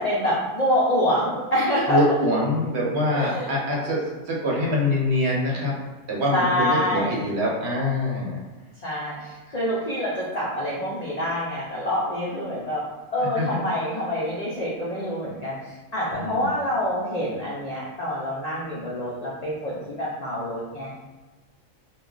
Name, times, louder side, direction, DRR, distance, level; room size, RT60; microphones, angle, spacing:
voice 1, 0.0-2.0 3.1-3.5 6.3-7.2 8.8-12.8 13.1-20.9, equal, 90° left, -6 dB, 0.3 m, -26 dB
voice 2, 1.9-5.8 6.1-8.4 13.3-13.6 16.1-16.5, left 1 dB, 60° right, -3 dB, 0.9 m, -24 dB
2.3 x 2.2 x 3.7 m, 1.2 s
omnidirectional pair, 1.4 m